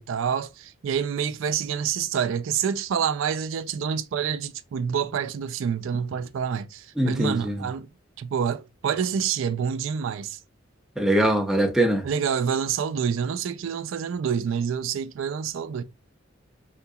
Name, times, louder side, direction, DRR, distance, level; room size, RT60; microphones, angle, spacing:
voice 1, 0.0-7.9 8.2-10.4 12.0-15.8, right 7 dB, 75° right, 0.3 m, -27 dB
voice 2, 7.0-7.7 11.0-12.1, right 1 dB, ahead, 0.5 m, -22 dB
3.7 x 2.8 x 2.2 m
head